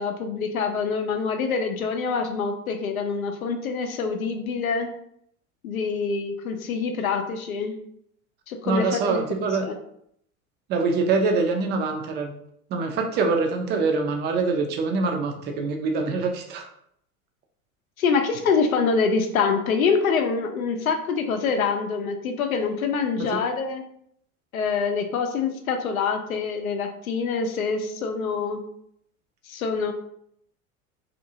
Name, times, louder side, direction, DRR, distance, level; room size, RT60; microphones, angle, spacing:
voice 1, 0.0-4.9 5.6-7.8 8.5-9.2 9.6-9.7 18.0-23.8 24.5-28.6 29.5-29.9, left 5 dB, 75° left, 5 dB, 0.6 m, -25 dB
voice 2, 8.7-9.7 10.7-12.3 12.7-16.6, right 4 dB, 25° right, 4 dB, 0.4 m, -24 dB
2.6 x 2.5 x 2.7 m, 0.70 s
figure-of-eight pair, 75°, 42 cm